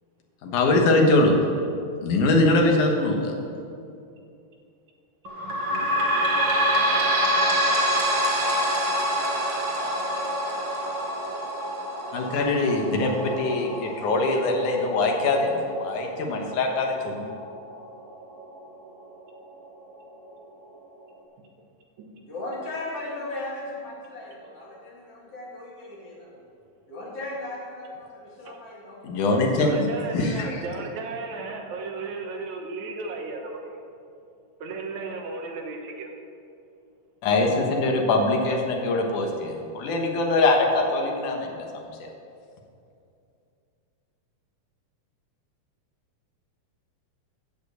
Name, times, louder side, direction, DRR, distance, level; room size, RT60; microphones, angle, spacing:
voice 1, 0.4-1.4 2.0-3.3 12.1-17.3 29.0-29.9 30.1-30.6 37.2-41.6 42.0-42.1, left 2 dB, 90° left, 2 dB, 2.8 m, -22 dB
sound 1, 5.2-18.4 19.0-19.1 19.3-19.4 20.2-20.3, equal, 45° right, 1.9 m, -26 dB
voice 2, 22.2-26.6 26.9-29.9, left 2 dB, 50° left, -4 dB, 3.3 m, -37 dB
voice 3, 29.6-33.8 34.6-36.1, right 3 dB, 75° right, 3 dB, 2.4 m, -35 dB
13.5 x 5.3 x 8.0 m, 2.5 s
omnidirectional pair, 3.5 m